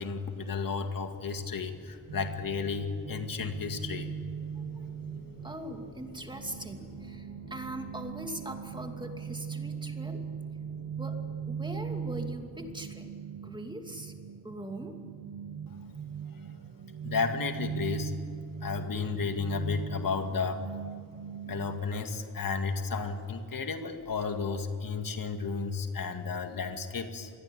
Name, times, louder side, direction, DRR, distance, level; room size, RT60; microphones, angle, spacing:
voice 1, 0.0-4.1 17.0-18.1 18.6-20.6 21.4-27.3, left 4 dB, 70° left, 6 dB, 2.1 m, -33 dB
sound 1, 1.1-12.8, left 2 dB, 30° left, 3.8 m, -52 dB
sound 2, 2.1-21.8, right 7 dB, 65° right, 1.1 m, -40 dB
voice 2, 5.4-10.2 11.0-11.2 11.5-13.1 13.4-14.1 14.4-15.0, right 1 dB, 15° right, 4 dB, 2.6 m, -41 dB
27.0 x 21.0 x 9.5 m, 2.2 s
wide cardioid pair, 120°, 35 cm